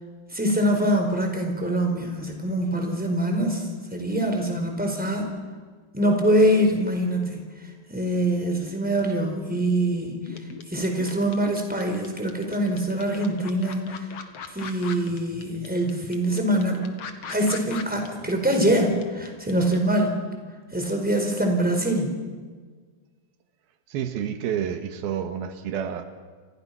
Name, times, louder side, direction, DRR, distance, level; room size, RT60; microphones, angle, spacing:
voice 1, 0.3-5.3 5.9-7.4 7.9-10.4 10.7-14.1 14.5-16.9 17.3-20.2 20.7-22.1, right 1 dB, ahead, 3 dB, 4.3 m, -24 dB
sound 1, 10.3-19.7, left 6 dB, 50° left, 2.4 m, -39 dB
voice 2, 23.9-26.1, right 9 dB, 90° right, 8 dB, 3.4 m, -29 dB
29.0 x 27.0 x 6.0 m, 1.5 s
omnidirectional pair, 4.3 m